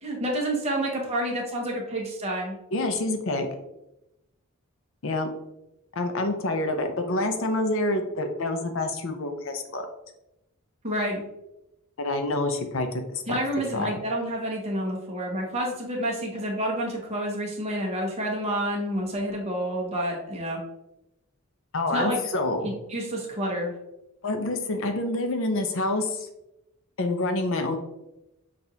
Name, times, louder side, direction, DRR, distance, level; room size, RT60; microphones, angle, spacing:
voice 1, 0.0-2.6 10.8-11.2 13.3-20.6 21.9-22.2 22.6-23.7, right 1 dB, 30° right, -1 dB, 0.9 m, -29 dB
voice 2, 2.7-3.5 5.0-5.3 5.9-9.9 12.0-13.4 13.7-14.0 21.7-22.7 24.2-26.3 27.0-27.8, left 2 dB, 65° left, 6 dB, 0.6 m, -27 dB
6.0 x 2.5 x 2.7 m, 0.91 s
head